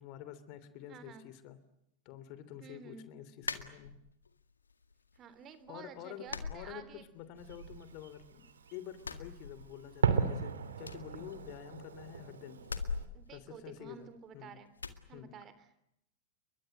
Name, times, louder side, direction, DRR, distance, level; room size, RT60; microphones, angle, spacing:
voice 1, 0.0-1.6 2.0-3.9 5.7-6.8 7.1-12.6 13.3-14.1 14.3-14.6 15.1-15.3, left 11 dB, 45° left, 14 dB, 3.0 m, -48 dB
voice 2, 0.9-1.2 2.6-3.1 5.1-7.0 13.1-14.7 15.1-15.8, right 7 dB, 35° right, 13 dB, 3.3 m, -51 dB
sound 1, 3.4-4.3 4.7-5.4 5.7-5.8 6.3-7.4 7.7-8.5 8.9-10.1 10.3-10.4 10.8-11.9 12.6-14.3 14.8-15.1, left 4 dB, 85° left, 1.9 m, -42 dB
Fireworks, 7.4-13.1, right 6 dB, 75° right, 2.8 m, -37 dB
30.0 x 23.5 x 7.8 m, 0.80 s
figure-of-eight pair, 95°, 0 cm